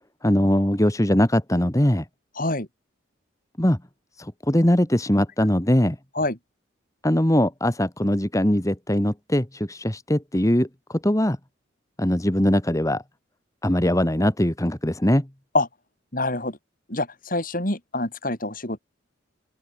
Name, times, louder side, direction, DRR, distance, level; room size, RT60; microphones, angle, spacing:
voice 1, 0.2-2.0 3.6-3.8 4.2-6.0 7.0-11.4 12.0-13.0 13.6-15.3, left 1 dB, 15° left, 1.5 m, -21 dB
voice 2, 2.4-2.7 6.1-6.4 15.5-15.7 16.1-16.6 16.9-18.8, left 2 dB, 45° left, 6.6 m, -26 dB
open air
head